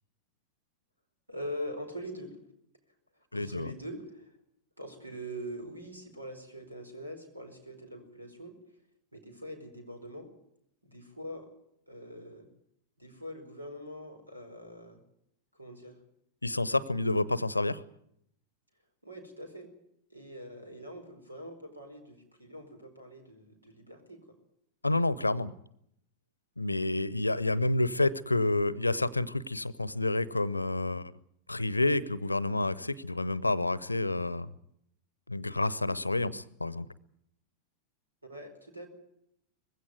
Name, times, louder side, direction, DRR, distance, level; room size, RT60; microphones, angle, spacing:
voice 1, 1.3-2.4 3.3-4.4 4.8-8.6 9.1-10.3 10.8-11.5 11.9-12.5 13.0-15.0 15.5-16.0 19.0-19.7 20.1-24.4 38.3-38.9, equal, 85° right, 6 dB, 4.8 m, -43 dB
voice 2, 3.3-3.7 16.4-17.8 24.8-25.5 26.6-31.1 31.5-34.5 35.3-36.9, left 2 dB, 85° left, 21 dB, 0.8 m, -29 dB
21.0 x 16.0 x 9.4 m, 0.75 s
figure-of-eight pair, 90°, 0 cm